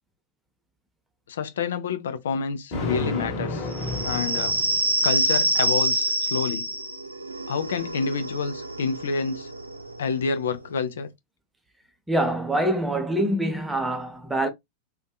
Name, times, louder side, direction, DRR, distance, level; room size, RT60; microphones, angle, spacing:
voice 1, 1.3-3.7 4.0-4.6 5.0-6.7 7.5-9.5 10.0-11.1, left 5 dB, 65° left, 0.4 m, -28 dB
Thunder, 2.7-5.2, left 2 dB, 45° left, 0.9 m, -31 dB
sound 1, 3.7-11.0, right 2 dB, 85° right, 0.3 m, -27 dB
voice 2, 12.1-14.5, right 1 dB, 5° right, 0.6 m, -25 dB
2.5 x 2.2 x 2.2 m
figure-of-eight pair, 90°, 0 cm